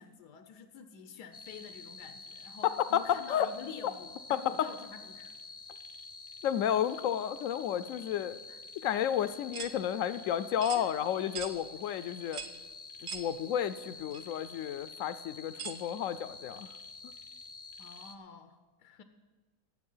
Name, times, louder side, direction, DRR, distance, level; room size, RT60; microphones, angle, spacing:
voice 1, 0.0-5.3 8.5-8.6 10.7-10.9 17.8-19.0, left 6 dB, 90° left, 8 dB, 1.3 m, -48 dB
sound 1, 1.3-18.2, left 4 dB, 35° left, 0.5 m, -48 dB
voice 2, 2.6-3.5 4.3-4.7 6.4-8.4 8.8-12.4 13.0-16.7 17.0-17.1, left 10 dB, 70° left, 13 dB, 0.8 m, -31 dB
sound 2, 9.5-9.8 10.6-10.8 11.4-11.6 12.3-12.6 13.1-13.3 14.1-14.2 15.6-15.8, right 6 dB, 75° right, 1.4 m, -40 dB
18.5 x 7.5 x 5.5 m, 1.3 s
omnidirectional pair, 1.7 m